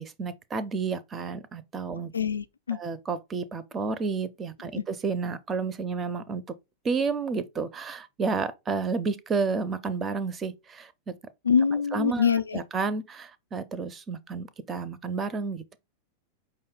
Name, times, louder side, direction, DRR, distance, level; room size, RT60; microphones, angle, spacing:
voice 1, 0.0-2.1 2.7-6.4 6.8-11.1 11.9-15.8, right 4 dB, 20° right, 0.5 m, -31 dB
voice 2, 2.1-2.8 4.7-4.8 11.4-12.6, left 6 dB, 75° left, 0.3 m, -24 dB
5.3 x 2.2 x 3.7 m
figure-of-eight pair, 90°, 0 cm